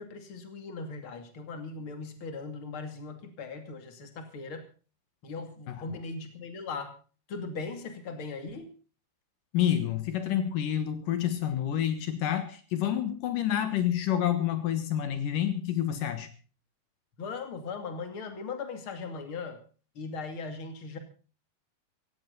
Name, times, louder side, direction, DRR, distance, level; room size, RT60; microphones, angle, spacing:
voice 1, 0.0-4.7 5.2-6.9 7.3-8.7 17.2-19.6 19.9-21.0, left 4 dB, 40° left, 7 dB, 3.1 m, -39 dB
voice 2, 9.5-16.3, left 10 dB, 75° left, 10 dB, 3.0 m, -28 dB
17.0 x 17.0 x 4.0 m, 0.38 s
omnidirectional pair, 3.9 m